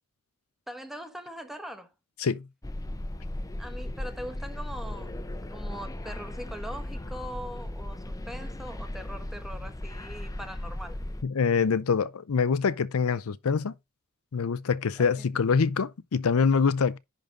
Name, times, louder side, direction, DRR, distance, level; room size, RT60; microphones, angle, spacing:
voice 1, 0.7-1.9 3.6-5.2 5.5-11.0 15.0-15.1, equal, ahead, 1.2 m, -41 dB
sound 1, 2.6-11.2, left 1 dB, 15° left, 0.7 m, -37 dB
voice 2, 11.2-13.7 14.3-17.0, left 5 dB, 70° left, 0.5 m, -25 dB
10.5 x 3.9 x 5.1 m
head